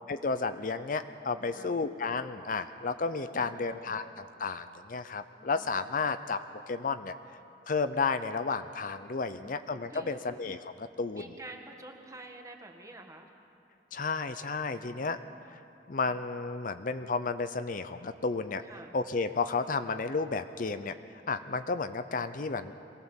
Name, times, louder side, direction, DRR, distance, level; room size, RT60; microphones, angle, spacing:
voice 1, 0.1-6.4 6.7-7.1 7.7-11.2 13.9-15.2 15.5-15.6 15.9-18.6 18.9-20.9 21.3-22.7, left 4 dB, 50° left, 10 dB, 0.6 m, -32 dB
voice 2, 1.4-1.8 3.3-4.0 5.4-5.7 9.2-9.6 9.9-10.3 11.1-13.3 14.7-15.4 18.6-18.9 21.4-21.7, right 2 dB, 20° right, 3 dB, 1.7 m, -49 dB
23.0 x 17.5 x 7.2 m, 2.8 s
head